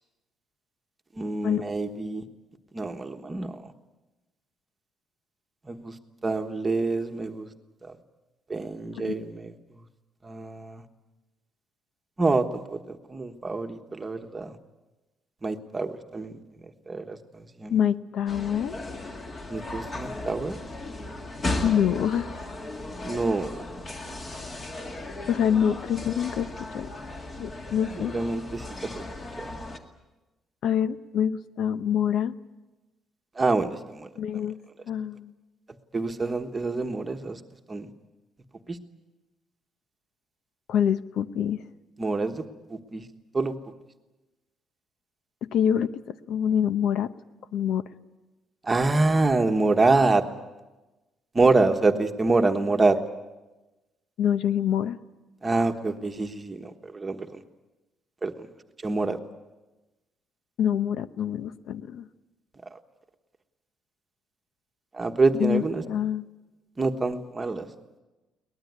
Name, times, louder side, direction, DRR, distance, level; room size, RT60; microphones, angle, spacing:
voice 1, 1.2-2.2 2.7-3.6 5.7-5.9 6.2-7.5 8.5-9.5 10.2-10.8 12.2-14.5 15.4-16.3 16.9-17.2 17.6-17.8 19.5-20.6 23.0-23.5 28.0-29.0 29.4-29.5 33.4-34.1 35.9-37.4 37.7-37.9 38.7-38.8 42.0-42.4 42.7-43.0 43.3-43.5 48.6-50.2 51.3-53.0 55.4-57.4 58.2-58.5 58.8-59.2 64.9-65.8 66.8-67.7, right 3 dB, 15° right, 6 dB, 1.3 m, -26 dB
voice 2, 9.0-9.3 17.7-18.8 21.6-22.3 25.3-26.9 27.4-28.1 30.6-32.3 34.2-34.6 34.9-35.3 40.7-41.6 45.4-47.1 47.5-47.8 54.2-55.0 60.6-62.1 65.3-66.3, left 9 dB, 65° left, 12 dB, 0.8 m, -26 dB
sound 1, 18.3-29.8, left 2 dB, 25° left, 2.0 m, -36 dB
23.0 x 19.5 x 9.5 m, 1.1 s
cardioid pair, 175°, 0 cm